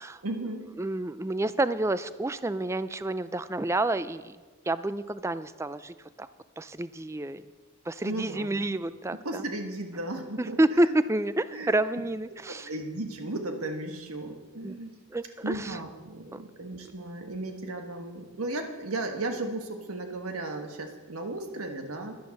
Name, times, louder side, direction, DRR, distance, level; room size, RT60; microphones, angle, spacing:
voice 1, 0.2-0.7 8.0-8.8 9.1-10.9 11.5-11.7 12.5-14.9 15.4-22.2, right 2 dB, 80° right, 4 dB, 1.5 m, -35 dB
voice 2, 0.8-4.4 4.7-6.3 6.6-7.4 7.9-9.4 10.4-12.7 14.6-14.7 15.1-15.8 16.3-16.4, right 1 dB, 15° right, 14 dB, 0.3 m, -29 dB
11.0 x 10.0 x 6.5 m, 1.4 s
head